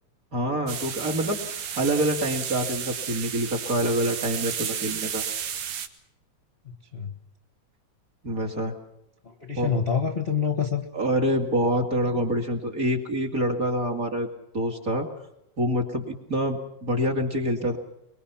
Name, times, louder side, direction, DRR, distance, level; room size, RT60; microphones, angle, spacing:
voice 1, 0.3-5.2 8.2-8.7 9.6-9.7 10.9-14.3 14.5-15.1 15.6-17.8, right 1 dB, 30° right, 3 dB, 2.6 m, -26 dB
sound 1, 0.7-5.9, right 8 dB, 75° right, 2.9 m, -32 dB
voice 2, 6.6-7.1 9.2-10.8, left 6 dB, 30° left, 7 dB, 1.2 m, -27 dB
24.0 x 23.0 x 5.8 m, 0.83 s
omnidirectional pair, 3.4 m